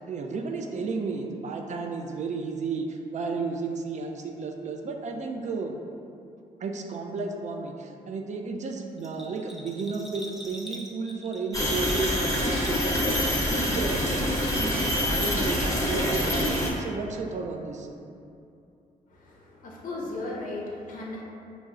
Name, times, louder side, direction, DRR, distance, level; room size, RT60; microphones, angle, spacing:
voice 1, 0.0-5.8 6.6-17.9, right 4 dB, 50° right, 3 dB, 0.4 m, -33 dB
Bell, 9.0-14.1 14.4-15.1 15.4-15.5, equal, ahead, 0.5 m, -45 dB
sound 1, 11.5-16.7, left 1 dB, 20° left, 0.9 m, -26 dB
voice 2, 19.1-21.2, left 2 dB, 65° left, -3 dB, 0.5 m, -36 dB
5.3 x 2.0 x 2.4 m, 2.6 s
cardioid pair, 65°, 15 cm